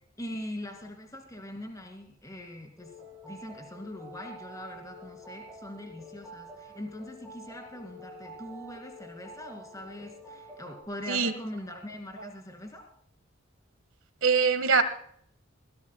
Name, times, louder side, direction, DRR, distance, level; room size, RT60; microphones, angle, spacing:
voice 1, 0.2-2.9 3.2-12.8, left 1 dB, 15° left, 4 dB, 2.5 m, -42 dB
sound 1, 2.8-10.8, equal, 5° right, 7.1 m, -48 dB
voice 2, 14.2-14.8, right 5 dB, 80° right, 10 dB, 1.4 m, -23 dB
21.5 x 16.5 x 2.3 m, 0.66 s
head